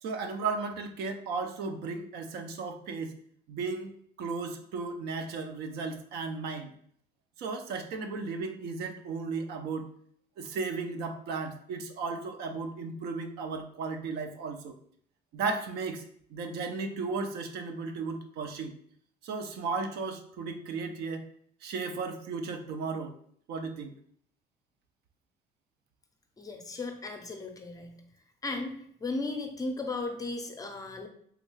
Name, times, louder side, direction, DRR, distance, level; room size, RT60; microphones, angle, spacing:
voice 1, 0.0-3.1 3.5-3.9 4.2-6.7 7.4-9.9 10.4-14.8 15.3-16.0 16.3-18.7 19.2-21.3 21.6-23.1 23.5-23.9, right 4 dB, 75° right, 6 dB, 0.5 m, -35 dB
voice 2, 26.4-28.0 28.4-28.7 29.0-31.1, left 3 dB, 20° left, 5 dB, 0.5 m, -35 dB
3.5 x 2.2 x 3.1 m, 0.63 s
cardioid pair, 110°, 17 cm